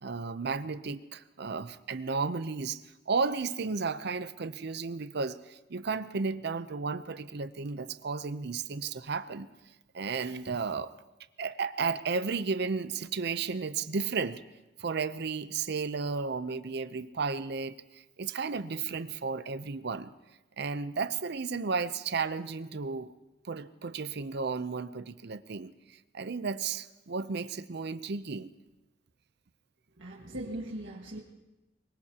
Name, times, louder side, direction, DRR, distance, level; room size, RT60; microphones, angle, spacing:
voice 1, 0.0-2.8 3.1-9.5 9.9-10.9 11.4-14.4 14.8-20.1 20.6-23.1 23.5-25.7 26.1-28.5, right 4 dB, 60° right, 13 dB, 0.6 m, -33 dB
voice 2, 30.0-31.2, right 1 dB, 90° right, -4 dB, 1.8 m, -39 dB
23.0 x 21.5 x 2.9 m, 1.0 s
head